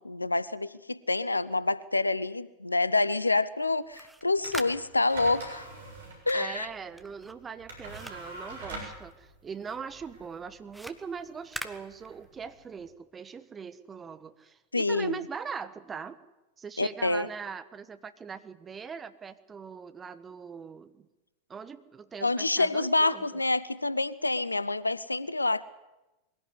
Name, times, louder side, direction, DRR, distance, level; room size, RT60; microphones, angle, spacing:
voice 1, 0.0-5.7 6.3-6.7 14.7-15.2 16.8-17.3 22.2-25.6, left 2 dB, 80° left, 19 dB, 0.7 m, -27 dB
sound 1, 3.8-9.3 9.6-12.6, right 1 dB, 5° right, 1.4 m, -45 dB
sound 2, 4.4-12.9, right 2 dB, 60° right, 7.1 m, -45 dB
voice 2, 6.3-16.2 16.6-21.1 21.5-23.4, right 6 dB, 20° right, 12 dB, 1.3 m, -41 dB
22.0 x 16.5 x 9.7 m, 1.0 s
figure-of-eight pair, 90°, 0 cm